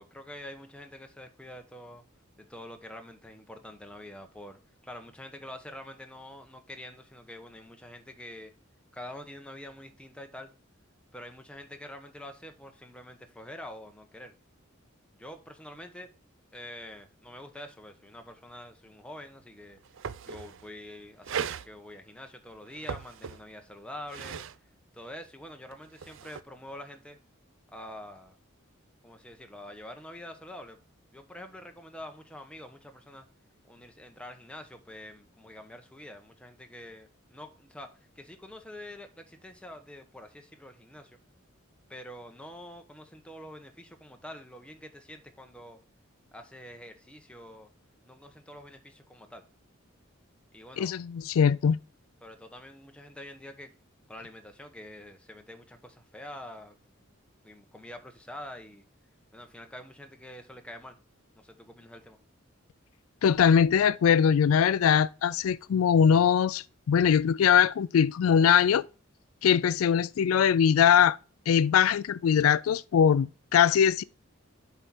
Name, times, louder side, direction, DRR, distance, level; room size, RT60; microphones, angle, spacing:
voice 1, 0.0-2.0 2.4-8.5 8.9-10.5 11.1-14.3 15.2-16.1 16.5-19.8 20.2-24.4 24.9-27.2 27.7-28.4 29.0-30.8 31.1-33.3 33.7-41.2 41.9-45.8 46.3-47.7 48.1-49.4 50.5-51.0 52.2-53.7 54.1-56.8 57.4-58.8 59.3-61.0 61.4-62.2, left 1 dB, 5° left, 1.0 m, -46 dB
sound 1, 19.4-19.5 19.7-20.7 21.2-21.7 22.7-23.6 24.0-24.6 25.7-26.4, right 7 dB, 65° right, 0.4 m, -37 dB
voice 2, 50.8-51.8 63.2-68.9 69.4-71.2 71.5-74.0, left 8 dB, 85° left, 0.4 m, -22 dB
7.7 x 4.8 x 4.2 m
head